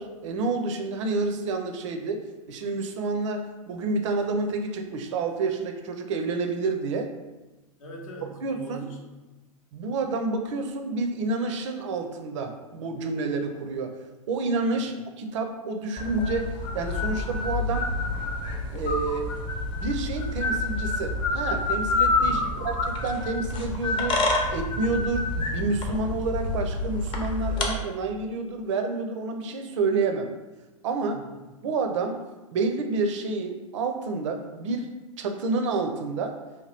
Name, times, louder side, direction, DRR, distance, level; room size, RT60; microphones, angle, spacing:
voice 1, 0.0-7.1 8.4-8.9 9.7-14.0 14.3-17.9 18.7-19.3 19.7-24.2 24.5-30.3 30.8-31.3 31.6-32.2 32.5-34.9 35.2-36.4, right 3 dB, 55° right, 5 dB, 0.5 m, -29 dB
voice 2, 7.8-9.3 14.7-14.9 22.2-22.7 31.1-31.4, right 2 dB, 70° left, 0 dB, 0.7 m, -42 dB
sound 1, 16.0-27.7, left 2 dB, 30° left, 0.6 m, -28 dB
2.8 x 2.2 x 3.3 m, 1.1 s
figure-of-eight pair, 90°, 18 cm